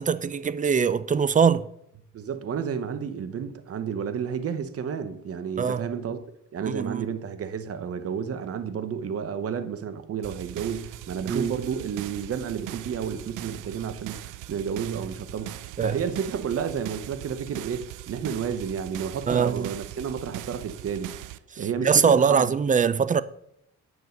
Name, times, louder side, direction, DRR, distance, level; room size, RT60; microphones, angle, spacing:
voice 1, 0.0-1.7 5.6-5.9 6.6-7.1 11.3-11.5 15.8-16.0 19.3-19.7 21.5-23.2, right 6 dB, 25° right, 0.5 m, -22 dB
voice 2, 2.1-6.2 6.5-21.1 21.6-22.5, right 7 dB, 50° right, 0.9 m, -31 dB
sound 1, 10.2-21.4, right 16 dB, 90° right, 0.5 m, -40 dB
9.6 x 6.2 x 5.3 m
cardioid pair, 90°, 30 cm